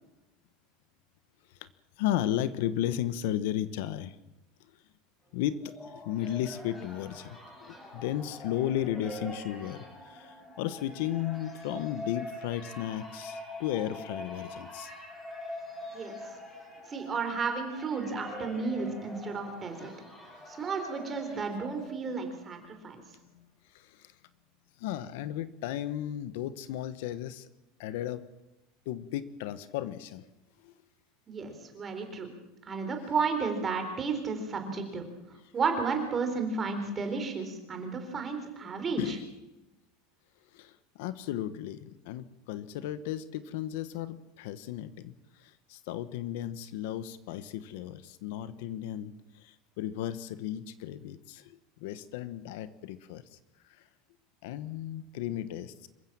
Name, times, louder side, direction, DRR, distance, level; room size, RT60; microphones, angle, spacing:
voice 1, 2.0-4.2 4.7-4.8 5.3-14.9 23.3-24.2 24.8-27.5 27.8-28.3 28.8-30.3 30.6-30.7 32.8-32.9 39.0-39.2 40.5-53.4 53.6-53.9 54.4-55.9, left 12 dB, 65° left, 14 dB, 1.1 m, -35 dB
sound 1, 5.3-22.3, left 1 dB, 10° left, 6.1 m, -44 dB
voice 2, 16.9-19.9 20.5-23.0 31.3-32.3 32.6-35.0 35.5-39.2, right 4 dB, 20° right, 5 dB, 3.9 m, -32 dB
26.5 x 15.0 x 7.5 m, 0.98 s
supercardioid pair, 165°, 0 cm